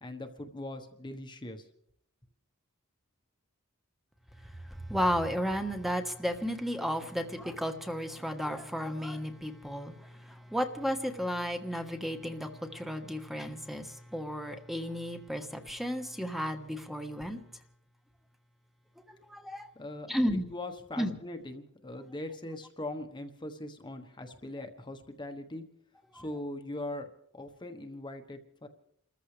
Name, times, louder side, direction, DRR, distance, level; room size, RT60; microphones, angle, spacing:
voice 1, 0.0-1.6 19.7-25.6 26.1-27.1 27.3-28.7, left 1 dB, 20° left, 6 dB, 1.2 m, -41 dB
voice 2, 4.7-17.4 19.1-19.7 20.1-20.5 21.0-21.2 26.1-26.2, equal, ahead, 5 dB, 1.4 m, -33 dB
29.0 x 14.5 x 3.4 m, 0.71 s
head